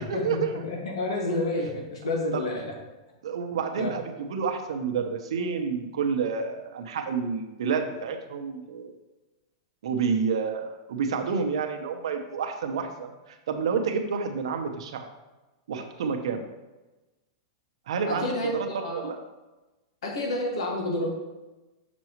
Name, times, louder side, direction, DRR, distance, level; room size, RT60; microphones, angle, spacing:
voice 1, 0.0-0.6 2.3-2.4 3.2-9.0 9.8-15.1 15.7-16.4 17.9-19.2, right 5 dB, 80° right, 5 dB, 0.9 m, -29 dB
voice 2, 0.6-2.7 3.8-3.9 18.1-19.1 20.0-21.2, left 1 dB, 90° left, 0 dB, 1.9 m, -29 dB
6.1 x 6.1 x 3.1 m, 1.1 s
supercardioid pair, 165°, 3 cm